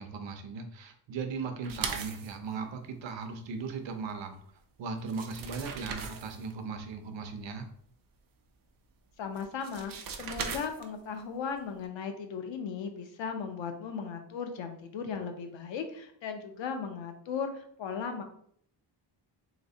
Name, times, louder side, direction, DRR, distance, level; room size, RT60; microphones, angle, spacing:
voice 1, 0.0-4.3 4.8-7.7, right 5 dB, 80° right, 5 dB, 0.8 m, -38 dB
sound 1, 1.6-2.4 4.6-4.7 5.0-6.5 9.3-11.1, right 6 dB, 50° right, 0.6 m, -38 dB
voice 2, 9.2-18.2, left 6 dB, 90° left, 6 dB, 0.8 m, -37 dB
3.5 x 3.1 x 4.0 m, 0.64 s
wide cardioid pair, 165°, 44 cm